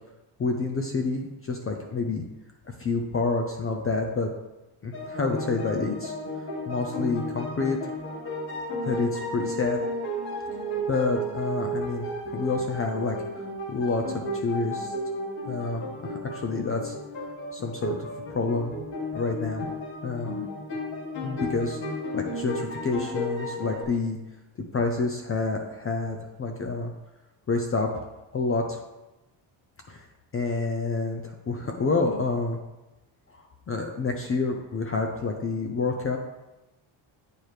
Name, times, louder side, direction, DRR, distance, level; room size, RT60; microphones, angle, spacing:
voice 1, 0.4-2.2 2.8-4.3 4.8-6.1 6.7-7.8 8.8-9.8 10.9-13.4 13.7-14.9 15.5-16.9 17.5-18.7 19.1-19.7 20.0-20.5 21.2-21.8 22.1-24.2 24.7-26.9 27.5-28.0 28.3-28.8 29.9-30.0 30.3-32.6 33.3-36.2, left 3 dB, 30° left, 3 dB, 0.4 m, -28 dB
sound 1, 4.9-23.8, equal, 60° left, 1.6 m, -33 dB
8.9 x 4.5 x 3.2 m, 1.0 s
cardioid pair, 150°, 49 cm